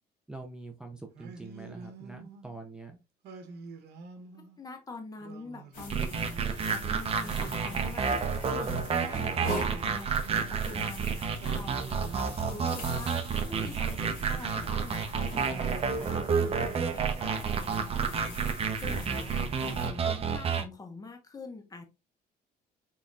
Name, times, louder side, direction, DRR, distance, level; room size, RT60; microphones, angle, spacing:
voice 1, 0.3-3.0 7.5-7.7, right 2 dB, 5° right, 0.6 m, -45 dB
Singing, 1.1-2.6 3.2-4.6 5.2-6.5 7.1-8.7 9.2-11.0 11.4-13.0 13.5-15.2 15.6-17.2, right 4 dB, 75° right, 1.1 m, -48 dB
voice 2, 4.3-21.8, left 3 dB, 20° left, 1.1 m, -45 dB
sound 1, 5.7-19.9, equal, 60° left, 2.6 m, -43 dB
sound 2, 5.9-20.6, right 6 dB, 35° right, 0.8 m, -30 dB
4.2 x 4.1 x 2.4 m
cardioid pair, 110°, 17 cm